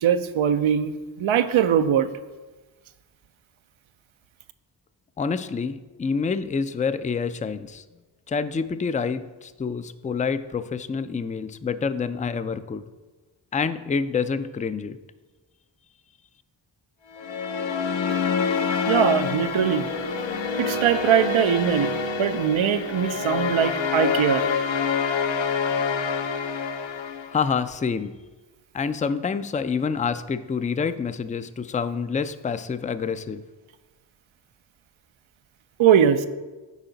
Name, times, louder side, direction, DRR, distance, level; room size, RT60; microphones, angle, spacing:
voice 1, 0.0-2.1 18.9-19.9 20.6-21.9 22.2-24.5 35.8-36.3, right 8 dB, 85° right, 10 dB, 0.6 m, -21 dB
voice 2, 5.2-7.8 8.3-12.8 13.5-15.0 27.3-28.2 28.7-33.4, left 5 dB, 20° left, 12 dB, 0.3 m, -27 dB
sound 1, 17.1-27.5, left 5 dB, 70° left, 0.7 m, -26 dB
8.3 x 4.9 x 3.9 m, 1.2 s
cardioid pair, 40°, 47 cm